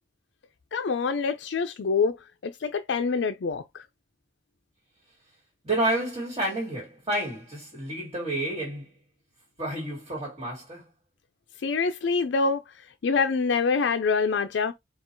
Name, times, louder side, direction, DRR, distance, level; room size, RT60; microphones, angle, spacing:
voice 1, 0.7-2.1 2.4-3.8 11.6-12.6 13.0-14.7, left 4 dB, 85° left, 0.4 m, -25 dB
voice 2, 5.6-8.9 9.6-10.8, right 1 dB, 30° right, 1.9 m, -30 dB
4.4 x 2.4 x 4.4 m
head